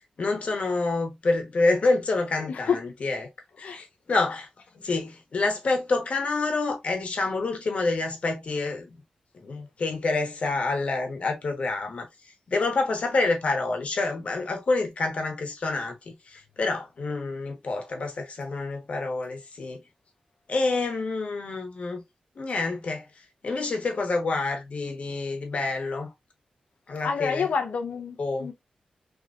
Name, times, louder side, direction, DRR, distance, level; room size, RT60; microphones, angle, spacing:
voice 1, 0.2-3.3 3.6-4.5 4.8-8.9 9.4-12.1 12.5-15.9 16.3-19.8 20.5-22.0 22.4-23.0 23.4-26.1 26.9-27.5 28.2-28.5, left 3 dB, 65° left, 1.2 m, -27 dB
voice 2, 27.0-28.5, left 6 dB, 85° left, 0.8 m, -28 dB
3.8 x 2.9 x 2.5 m
cardioid pair, 65°, 2 cm